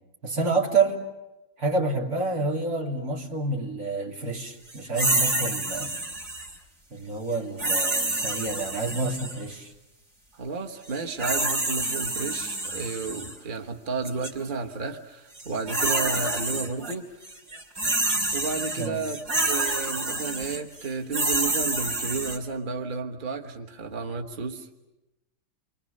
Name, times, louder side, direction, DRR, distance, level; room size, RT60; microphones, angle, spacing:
voice 1, 0.2-1.0 1.6-5.9 6.9-9.7 18.8-19.0, right 3 dB, 90° right, -1 dB, 3.7 m, -28 dB
sound 1, 4.9-6.6 7.6-9.4 10.9-13.3 14.0-14.3 15.4-16.9 17.2-22.4, right 2 dB, 65° right, 3.2 m, -28 dB
voice 2, 10.3-17.1 18.3-24.7, right 4 dB, 35° right, 2 dB, 1.4 m, -32 dB
29.0 x 24.5 x 6.6 m, 0.98 s
omnidirectional pair, 1.5 m